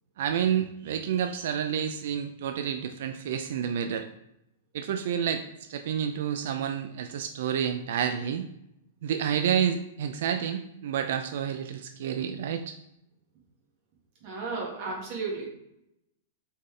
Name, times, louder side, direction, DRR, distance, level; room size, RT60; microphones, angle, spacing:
voice 1, 0.2-4.0 4.7-5.4 5.7-8.5 9.0-12.8, right 8 dB, 55° right, 6 dB, 0.3 m, -29 dB
voice 2, 14.2-15.5, right 3 dB, 35° right, -2 dB, 1.4 m, -33 dB
4.1 x 3.6 x 3.2 m, 0.80 s
supercardioid pair, 170°, 0 cm